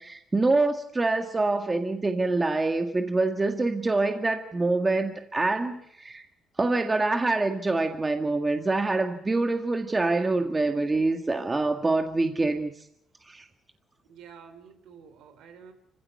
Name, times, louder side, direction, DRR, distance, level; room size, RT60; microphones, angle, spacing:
voice 1, 0.0-6.2 6.6-12.7 13.3-13.4, right 3 dB, 25° right, 5 dB, 1.8 m, -25 dB
voice 2, 14.0-15.7, right 7 dB, 85° right, 9 dB, 3.6 m, -49 dB
25.0 x 16.0 x 8.4 m, 0.76 s
cardioid pair, 90°, 0 cm